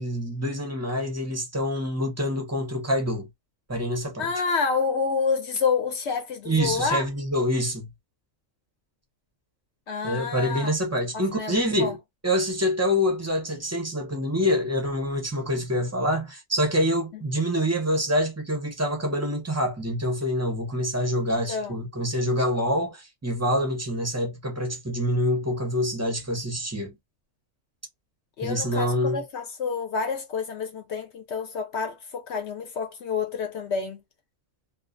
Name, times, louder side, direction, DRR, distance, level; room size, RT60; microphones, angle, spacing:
voice 1, 0.0-3.3 3.7-4.3 6.5-7.9 10.0-12.0 12.2-27.0 28.4-29.2, equal, 20° right, 0.4 m, -26 dB
voice 2, 4.2-7.1 9.9-10.7 11.1-12.0 21.3-21.8 28.4-34.0, left 5 dB, 65° left, 0.8 m, -28 dB
2.3 x 2.3 x 2.4 m
omnidirectional pair, 1.4 m